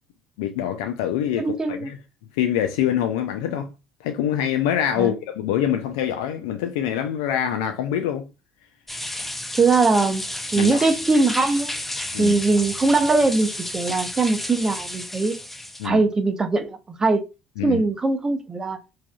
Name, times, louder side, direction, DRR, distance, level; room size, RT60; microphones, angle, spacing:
voice 1, 0.4-2.0 2.3-3.7 4.0-8.3 10.6-10.9 12.1-12.3 15.8-16.0 17.6-17.8, left 10 dB, 75° left, 0.4 m, -25 dB
voice 2, 1.3-1.9 5.0-5.1 9.6-10.3 10.5-11.7 12.2-15.4 15.8-17.2 17.6-18.8, right 3 dB, 25° right, 0.8 m, -21 dB
sound 1, 8.9-15.9, left 1 dB, 5° left, 0.6 m, -32 dB
4.7 x 2.7 x 2.3 m
hypercardioid pair, 55°, 2 cm